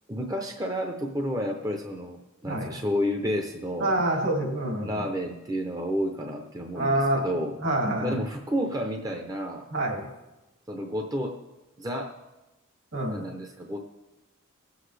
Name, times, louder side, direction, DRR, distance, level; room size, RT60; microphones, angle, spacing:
voice 1, 0.1-3.9 4.8-7.6 8.0-9.7 10.7-11.4 11.8-12.1 13.1-13.8, equal, 20° right, 3 dB, 0.6 m, -31 dB
voice 2, 3.8-5.0 6.7-7.2 7.6-8.2 9.7-10.1 12.9-13.3, right 1 dB, 65° right, 1 dB, 2.4 m, -26 dB
20.0 x 8.0 x 3.3 m, 1.0 s
head